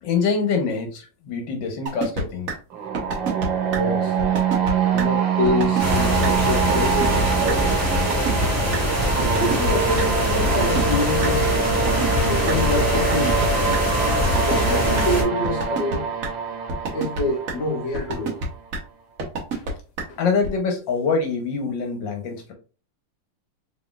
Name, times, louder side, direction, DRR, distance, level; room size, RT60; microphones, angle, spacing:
voice 1, 0.0-2.5 20.2-22.5, left 5 dB, 80° left, 1.6 m, -24 dB
sound 1, 1.9-2.2 2.5-2.6 2.9-3.5 3.7-3.8 4.2-4.7 5.0-5.1 5.4-6.0 6.2-6.3 6.7-7.2 7.5-7.6 7.9-8.5 8.7-8.8 9.2-10.0 10.4-11.3 11.7-12.5 12.9-13.5 13.7-13.8 14.2-14.7 15.0-15.1 15.4-16.0 16.2-16.3 16.7-17.2 17.5-17.6 17.9-18.5 18.7-18.8 19.2-19.7 20.0-20.1 20.4-20.5, right 3 dB, 55° right, 1.2 m, -26 dB
sound 2, 2.7-18.5, right 6 dB, 85° right, 1.6 m, -25 dB
voice 2, 3.7-4.1 4.9-7.9 9.4-11.5 12.2-13.3 14.3-16.1 16.9-18.3 19.5-19.7 20.1-20.2, left 2 dB, 45° left, 1.3 m, -26 dB
sound 3, 5.8-15.2, equal, 10° right, 1.2 m, -23 dB
4.2 x 3.6 x 2.3 m
omnidirectional pair, 2.0 m